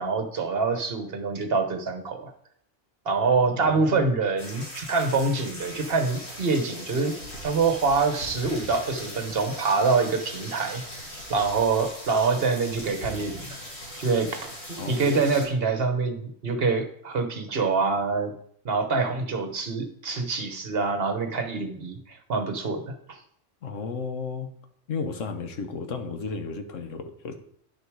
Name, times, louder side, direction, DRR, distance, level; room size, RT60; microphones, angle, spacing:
voice 1, 0.0-2.3 3.1-7.1 7.4-10.8 11.3-13.6 14.0-18.3 18.6-23.2, right 4 dB, 55° right, 6 dB, 1.2 m, -25 dB
voice 2, 3.5-4.1 14.8-15.3 23.6-24.5 24.9-27.3, left 5 dB, 85° left, 6 dB, 1.4 m, -33 dB
sound 1, 4.4-15.5, equal, 60° left, 2.8 m, -40 dB
10.0 x 6.7 x 4.7 m, 0.67 s
omnidirectional pair, 1.3 m